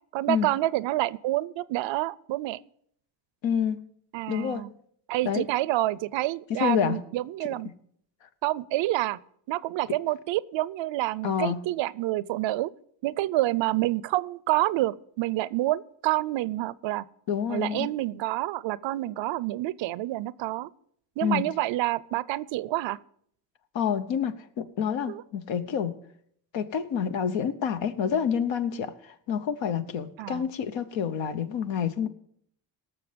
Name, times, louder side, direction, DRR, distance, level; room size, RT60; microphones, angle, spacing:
voice 1, 0.1-2.6 4.1-4.7 5.1-7.7 8.4-9.2 9.5-12.7 13.0-17.0 17.5-20.7 21.2-23.0 25.1-25.2 30.2-30.5, right 16 dB, 85° right, 21 dB, 0.6 m, -28 dB
voice 2, 3.4-3.8 4.3-4.7 5.2-5.5 6.5-7.0 7.6-7.7 11.2-11.6 17.3-17.9 21.2-21.5 23.7-25.9 26.5-32.1, left 7 dB, 85° left, 10 dB, 1.0 m, -28 dB
18.0 x 6.7 x 5.1 m, 0.67 s
cardioid pair, 75°, 44 cm